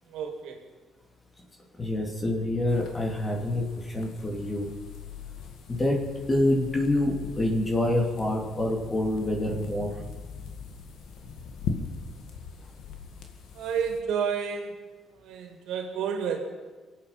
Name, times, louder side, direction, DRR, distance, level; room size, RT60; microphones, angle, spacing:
voice 1, 0.1-0.6 13.5-14.8 15.1-16.4, right 7 dB, 80° right, 4 dB, 2.3 m, -30 dB
voice 2, 1.8-4.7 5.7-9.9, left 1 dB, 25° left, -1 dB, 2.8 m, -27 dB
sound 1, 2.7-14.0, left 5 dB, 75° left, 1.8 m, -40 dB
23.5 x 8.6 x 5.8 m, 1.4 s
supercardioid pair, 75°, 0 cm